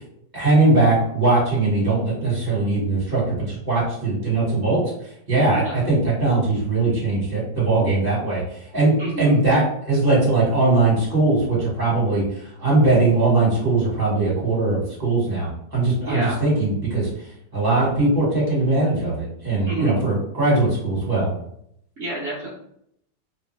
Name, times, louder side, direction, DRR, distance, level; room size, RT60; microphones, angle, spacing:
voice 1, 0.3-4.8 5.3-17.1 17.5-21.3, right 2 dB, 25° right, -7 dB, 1.4 m, -20 dB
voice 2, 9.0-9.4 16.0-16.4 19.7-19.9 22.0-22.5, right 2 dB, 50° right, -8 dB, 0.8 m, -28 dB
3.0 x 2.1 x 3.2 m, 0.73 s
omnidirectional pair, 1.9 m